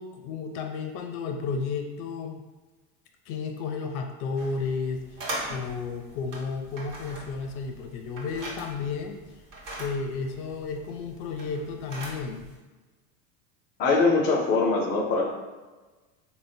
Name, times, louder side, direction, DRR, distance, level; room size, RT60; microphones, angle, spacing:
voice 1, 0.0-2.4 3.3-5.0 5.5-9.2 9.8-12.5, left 4 dB, 70° left, 4 dB, 0.6 m, -32 dB
sound 1, 4.4-12.6, right 1 dB, 50° right, 1.0 m, -41 dB
voice 2, 13.8-15.3, left 3 dB, 25° left, -1 dB, 0.3 m, -22 dB
3.5 x 2.1 x 2.6 m, 1.2 s
supercardioid pair, 125°, 44 cm